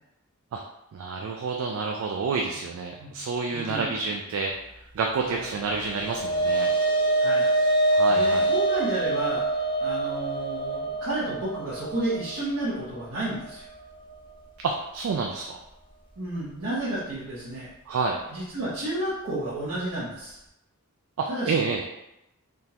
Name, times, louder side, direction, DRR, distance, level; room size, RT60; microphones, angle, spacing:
voice 1, 0.9-4.5 4.9-6.7 7.9-8.5 14.6-15.6 17.9-18.2 21.2-21.8, right 4 dB, 70° right, 2 dB, 0.3 m, -29 dB
voice 2, 3.5-3.9 5.2-5.4 7.2-7.5 8.1-9.4 9.8-13.6 16.2-17.7 18.3-20.4 21.3-21.7, right 1 dB, 85° right, -12 dB, 1.1 m, -31 dB
sound 1, 5.7-14.2, right 2 dB, 20° left, 0.4 m, -25 dB
3.6 x 2.4 x 2.8 m, 0.90 s
head